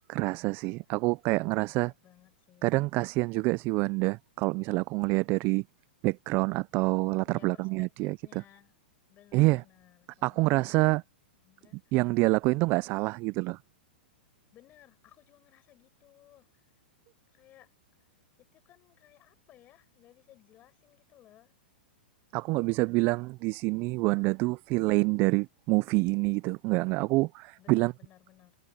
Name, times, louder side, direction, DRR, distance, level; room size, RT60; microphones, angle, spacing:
voice 1, 0.1-1.9 2.6-5.6 6.0-8.4 9.3-9.6 10.2-11.0 11.9-13.6 22.3-27.9, right 24 dB, 40° right, 0.4 m, -27 dB
voice 2, 1.3-2.7 7.2-8.8 9.1-10.9 11.4-12.0 14.5-16.5 17.3-17.7 18.4-21.6 27.6-28.6, left 13 dB, 30° left, 7.6 m, -59 dB
hypercardioid pair, 120°, 6 cm